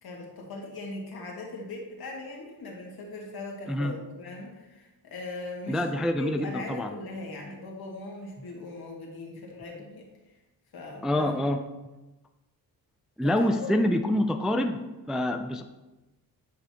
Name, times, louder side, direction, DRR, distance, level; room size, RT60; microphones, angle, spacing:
voice 1, 0.0-10.1 10.7-11.3 13.2-13.7, left 3 dB, 70° left, -1 dB, 2.0 m, -39 dB
voice 2, 5.7-6.9 11.0-11.6 13.2-15.6, left 1 dB, ahead, 6 dB, 0.3 m, -26 dB
9.4 x 5.5 x 2.9 m, 1.1 s
cardioid pair, 105°, 38 cm